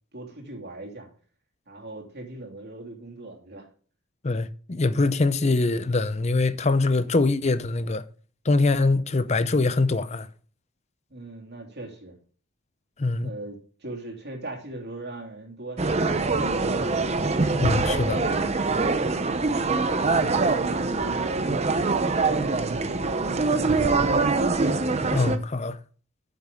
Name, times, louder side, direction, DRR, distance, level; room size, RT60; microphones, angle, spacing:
voice 1, 0.1-1.1 1.7-3.7 11.1-12.2 13.2-16.5 20.3-23.1 23.5-24.2, right 2 dB, 50° right, 2.7 m, -39 dB
voice 2, 4.2-8.0 8.5-10.3 13.0-13.3 17.5-18.2 25.1-25.8, left 3 dB, 30° left, 0.5 m, -23 dB
sound 1, 15.8-25.4, right 3 dB, 30° right, 0.7 m, -24 dB
9.5 x 7.4 x 3.7 m
head